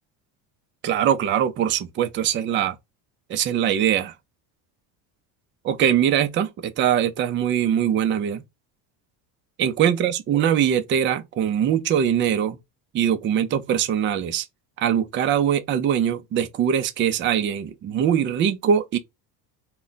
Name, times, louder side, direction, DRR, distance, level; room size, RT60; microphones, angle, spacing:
voice 1, 0.8-2.8 3.3-4.1 5.6-8.4 9.6-12.6 12.9-14.5 14.8-19.0, right 9 dB, 25° right, 0.4 m, -22 dB
2.4 x 2.2 x 3.7 m
supercardioid pair, 95°, 49 cm